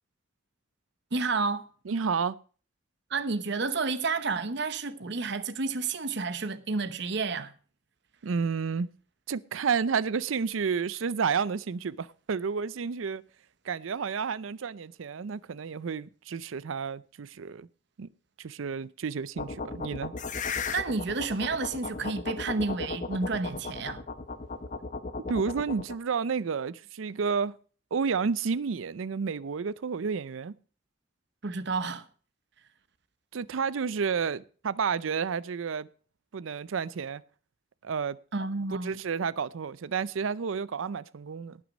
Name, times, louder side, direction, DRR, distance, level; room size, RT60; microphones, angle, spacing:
voice 1, 1.1-1.7 3.1-7.5 20.7-24.0 31.4-32.1 38.3-39.0, right 4 dB, 60° right, 0.9 m, -30 dB
voice 2, 1.9-2.4 8.2-8.9 9.3-13.2 13.6-17.7 18.0-18.1 18.4-20.1 25.3-27.6 27.9-30.5 33.3-35.9 36.3-37.2 37.8-38.2 38.8-41.6, right 5 dB, 80° right, 0.5 m, -31 dB
sound 1, 19.4-26.0, left 4 dB, 40° left, 0.8 m, -36 dB
18.5 x 6.1 x 5.2 m
head